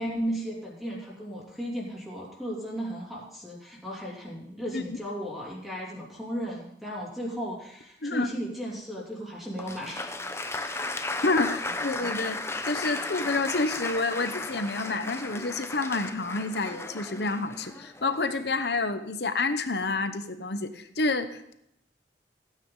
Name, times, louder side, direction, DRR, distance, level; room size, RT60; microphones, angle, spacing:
voice 1, 0.0-10.1 10.4-10.9, equal, ahead, -5 dB, 3.0 m, -35 dB
Applause, 9.6-18.5, left 2 dB, 15° left, 0.7 m, -35 dB
voice 2, 11.2-12.4 12.7-21.5, left 3 dB, 65° left, 10 dB, 1.0 m, -29 dB
16.0 x 9.2 x 3.9 m, 0.75 s
head